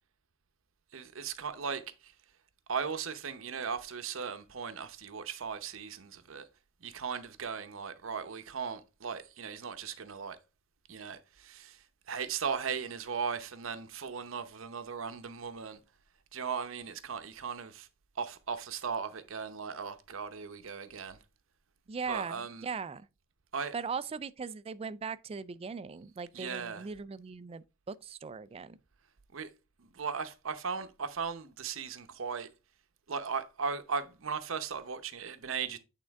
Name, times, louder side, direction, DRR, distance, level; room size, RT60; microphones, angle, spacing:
voice 1, 0.9-2.1 2.7-6.5 6.8-10.4 10.9-15.8 16.3-17.9 18.2-21.2 22.1-22.7 23.5-23.7 26.3-26.9 29.3-29.5 29.8-32.5 33.1-35.8, right 6 dB, 70° right, 0.7 m, -37 dB
voice 2, 21.9-23.1 23.7-28.8, right 5 dB, 30° right, 0.3 m, -39 dB
8.5 x 3.8 x 3.4 m
head